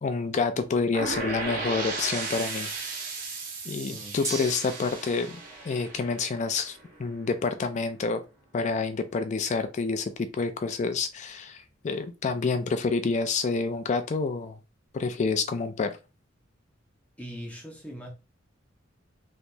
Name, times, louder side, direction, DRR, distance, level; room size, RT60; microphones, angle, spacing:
voice 1, 0.0-2.7 3.7-8.2 8.5-14.6 14.9-16.0, left 4 dB, 35° left, 0.3 m, -28 dB
sound 1, 0.9-6.8, right 3 dB, 45° right, 1.0 m, -35 dB
voice 2, 3.9-4.2 17.2-18.1, equal, 5° left, 0.7 m, -41 dB
Gong, 4.2-14.4, right 2 dB, 15° right, 1.3 m, -45 dB
3.2 x 2.9 x 2.6 m
head